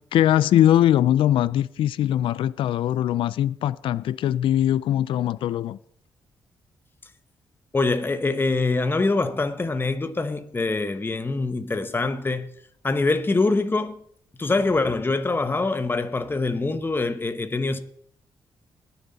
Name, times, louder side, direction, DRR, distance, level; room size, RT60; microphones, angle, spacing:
voice 1, 0.1-5.8, left 11 dB, 80° left, 0.4 m, -21 dB
voice 2, 7.7-12.5 12.8-14.0 14.4-17.8, left 3 dB, 25° left, 1.0 m, -24 dB
20.5 x 7.1 x 4.1 m
cardioid pair, 70°, 9 cm